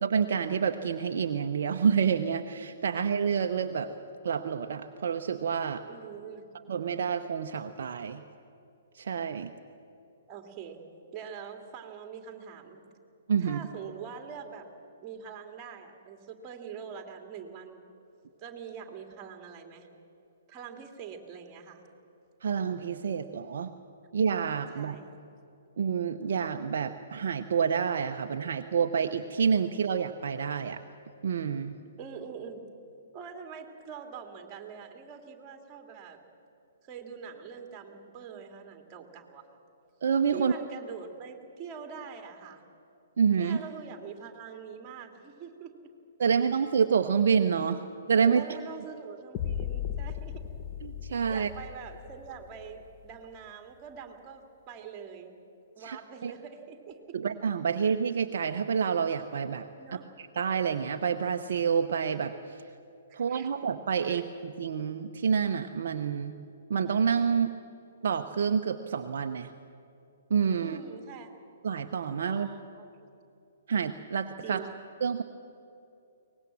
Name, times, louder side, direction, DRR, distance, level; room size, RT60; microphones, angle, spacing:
voice 1, 0.0-3.9 4.2-5.8 6.7-8.2 8.9-9.5 13.3-13.6 22.4-23.7 24.1-24.9 25.8-30.8 31.2-31.8 40.0-40.5 43.2-43.6 46.2-48.4 50.8-51.5 55.9-56.0 56.2-56.3 57.1-59.7 60.2-62.3 63.1-66.3 66.7-67.5 68.0-69.5 70.3-70.8 71.6-72.5 73.7-74.6 75.0-75.2, right 6 dB, 60° right, 6 dB, 0.8 m, -28 dB
voice 2, 5.9-6.4 10.3-10.8 11.1-12.8 13.4-14.7 15.0-17.8 18.4-19.9 20.5-21.8 24.7-25.2 32.0-32.7 33.1-36.2 36.9-39.4 40.3-42.6 43.4-45.9 48.2-50.5 51.3-55.3 55.8-57.2 59.8-60.0 63.1-63.5 64.0-64.2 70.6-71.3 72.3-73.1 74.4-74.7, right 7 dB, 25° right, 5 dB, 2.6 m, -44 dB
sound 1, 49.3-53.3, left 9 dB, 30° left, 1.0 m, -37 dB
23.5 x 19.5 x 7.5 m, 2.7 s
figure-of-eight pair, 120°, 0 cm